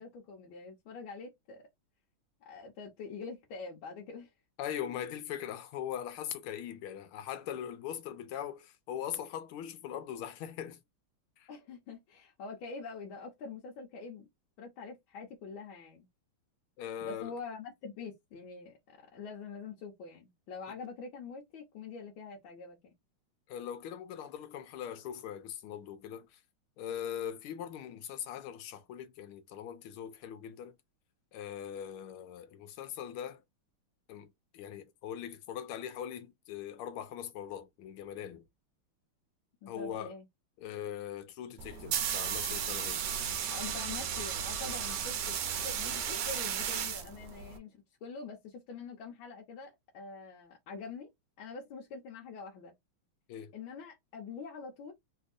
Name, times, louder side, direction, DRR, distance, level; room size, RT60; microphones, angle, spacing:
voice 1, 0.0-1.6 2.4-4.3 11.5-14.3 14.6-16.1 17.0-22.9 39.6-40.3 43.5-51.1 51.4-52.7 53.5-54.9, left 4 dB, 70° left, 1.6 m, -45 dB
voice 2, 4.6-10.8 11.4-11.5 16.8-17.3 23.5-26.4 26.8-30.7 31.3-33.4 34.1-34.3 34.5-38.5 39.7-40.1 40.6-43.0 53.3-53.5, left 9 dB, 90° left, 1.5 m, -41 dB
sound 1, 41.6-47.6, right 8 dB, 70° right, 1.1 m, -34 dB
3.5 x 2.8 x 2.5 m
omnidirectional pair, 2.4 m